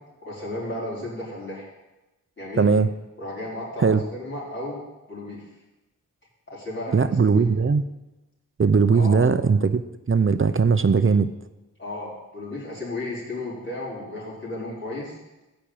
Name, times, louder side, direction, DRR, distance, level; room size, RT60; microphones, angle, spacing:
voice 1, 0.2-1.6 2.4-2.7 3.2-4.8 5.1-5.4 6.5-7.0 7.4-7.5 8.9-9.2 11.8-15.1, left 1 dB, 40° left, -7 dB, 5.0 m, -34 dB
voice 2, 2.6-2.9 3.8-4.0 6.9-7.9 8.6-9.8 10.1-11.3, right 5 dB, 40° right, 12 dB, 0.6 m, -19 dB
13.5 x 5.3 x 9.0 m, 1.0 s
wide cardioid pair, 80°, 31 cm